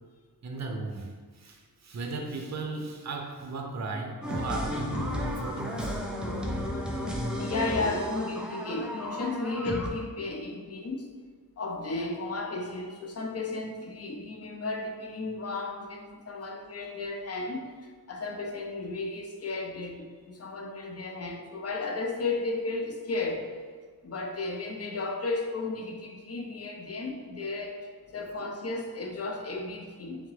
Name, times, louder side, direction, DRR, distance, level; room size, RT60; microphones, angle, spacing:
voice 1, 0.4-6.0, right 3 dB, 45° right, 2 dB, 0.6 m, -36 dB
sound 1, 4.2-9.9, equal, ahead, 0.5 m, -33 dB
voice 2, 7.4-11.1 11.6-23.5 24.0-27.9 28.1-30.3, left 3 dB, 40° left, 1 dB, 0.6 m, -34 dB
3.5 x 3.5 x 3.2 m, 1.5 s
wide cardioid pair, 90°, 37 cm